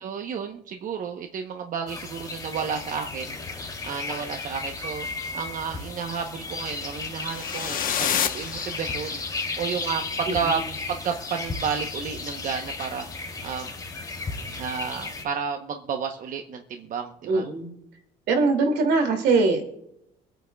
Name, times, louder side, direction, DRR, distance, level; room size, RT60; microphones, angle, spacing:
voice 1, 0.0-3.4 3.8-5.1 5.3-10.6 10.9-13.1 13.4-13.7 14.6-17.4, right 6 dB, 50° right, 4 dB, 0.9 m, -31 dB
sound 1, 1.9-15.2, left 3 dB, 20° left, 3.0 m, -34 dB
sound 2, 7.2-9.3, left 9 dB, 55° left, 1.0 m, -29 dB
voice 2, 10.3-10.6 17.3-17.8 18.3-19.7, right 3 dB, 80° right, 4 dB, 2.5 m, -22 dB
24.0 x 9.0 x 2.3 m, 0.80 s
cardioid pair, 110°, 17 cm